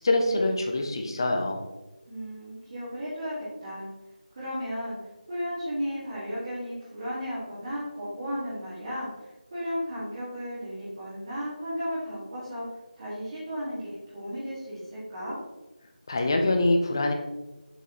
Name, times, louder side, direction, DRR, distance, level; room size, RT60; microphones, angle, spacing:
voice 1, 0.0-1.7 16.1-17.1, left 2 dB, 30° left, 4 dB, 0.6 m, -24 dB
voice 2, 2.1-3.9 4.3-5.0 5.3-12.6 12.9-15.4, equal, 30° right, -10 dB, 1.9 m, -34 dB
6.7 x 4.6 x 3.0 m, 1.1 s
figure-of-eight pair, 170°, 5 cm